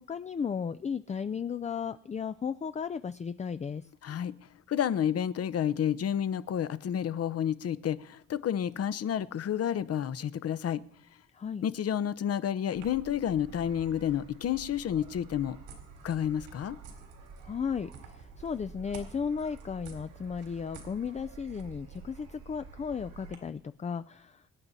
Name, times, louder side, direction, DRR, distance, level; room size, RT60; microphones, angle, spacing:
voice 1, 0.1-3.9 11.3-11.6 17.4-24.4, left 6 dB, 25° left, 12 dB, 0.4 m, -35 dB
voice 2, 4.0-4.3 4.7-10.8 11.6-15.6 16.0-16.8, left 9 dB, 55° left, 15 dB, 0.8 m, -30 dB
sound 1, 12.7-23.4, right 5 dB, 80° right, 3.9 m, -49 dB
24.0 x 9.7 x 4.1 m, 0.69 s
cardioid pair, 90°, 30 cm